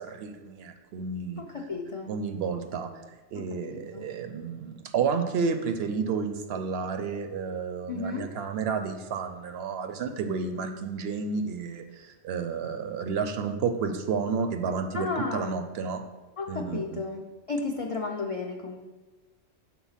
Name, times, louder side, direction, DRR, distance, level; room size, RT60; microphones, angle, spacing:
voice 1, 0.0-1.4 2.1-2.9 3.3-16.0 16.5-17.0, right 5 dB, 65° right, 7 dB, 0.7 m, -31 dB
voice 2, 1.4-2.1 3.3-4.1 7.9-8.3 14.9-15.6 16.4-18.8, left 4 dB, 55° left, 1 dB, 0.3 m, -33 dB
6.1 x 3.9 x 5.6 m, 1.3 s
omnidirectional pair, 1.3 m